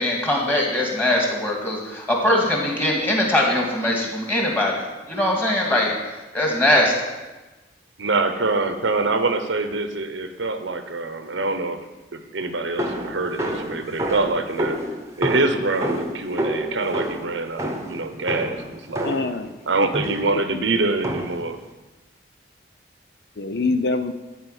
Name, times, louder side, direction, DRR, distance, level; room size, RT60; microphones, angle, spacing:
voice 1, 0.0-6.9, left 1 dB, 10° left, -2 dB, 2.3 m, -21 dB
voice 2, 8.0-11.8 12.1-14.8 15.2-19.1 19.7-21.6, right 3 dB, 85° right, 8 dB, 1.0 m, -25 dB
sound 1, 12.8-19.4 19.9-20.4 21.0-21.5, equal, 15° right, 1.1 m, -28 dB
voice 3, 19.0-20.4 23.4-24.1, left 3 dB, 60° left, 9 dB, 0.6 m, -26 dB
12.5 x 4.9 x 8.2 m, 1.1 s
head